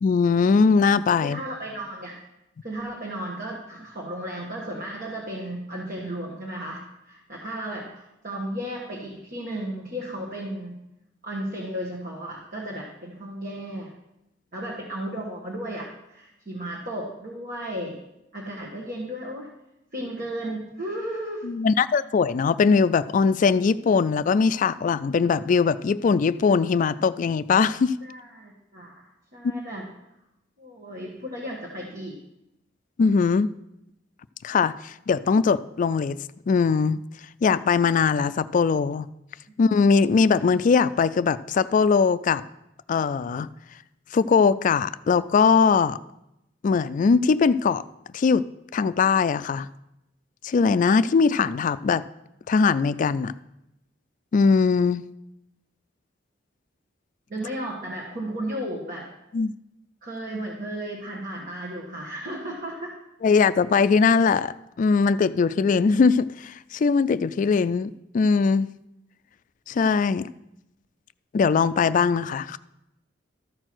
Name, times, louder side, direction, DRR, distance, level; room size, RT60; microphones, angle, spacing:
voice 1, 0.0-1.4 21.4-27.9 33.0-33.5 34.4-36.2 36.5-37.0 37.4-39.1 39.6-42.4 42.9-43.5 44.1-46.0 46.6-47.8 48.1-48.4 48.7-49.7 50.4-52.0 52.5-53.3 54.3-55.0 59.3-59.5 63.2-68.7 69.7-70.3 71.3-72.6, left 5 dB, 45° left, 15 dB, 0.3 m, -21 dB
voice 2, 1.2-2.2 2.6-10.8 11.2-13.9 14.5-18.0 18.3-19.5 19.9-21.4 28.0-28.9 29.3-29.9 30.6-32.2 57.3-59.1 60.0-62.9, right 1 dB, 50° right, -3 dB, 1.5 m, -34 dB
13.5 x 4.5 x 6.1 m, 0.87 s
head